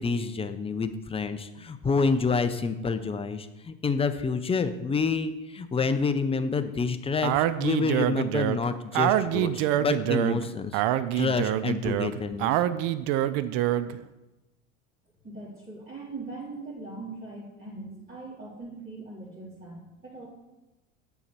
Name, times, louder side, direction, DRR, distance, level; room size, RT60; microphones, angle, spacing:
voice 1, 0.0-10.8 11.1-12.5, left 4 dB, 15° left, 10 dB, 0.6 m, -28 dB
Speech, 7.2-14.0, right 12 dB, 60° right, 0.6 m, -26 dB
voice 2, 15.2-20.3, right 3 dB, 25° right, -9 dB, 3.1 m, -41 dB
7.0 x 4.5 x 6.7 m, 1.0 s
hypercardioid pair, 90°, 39 cm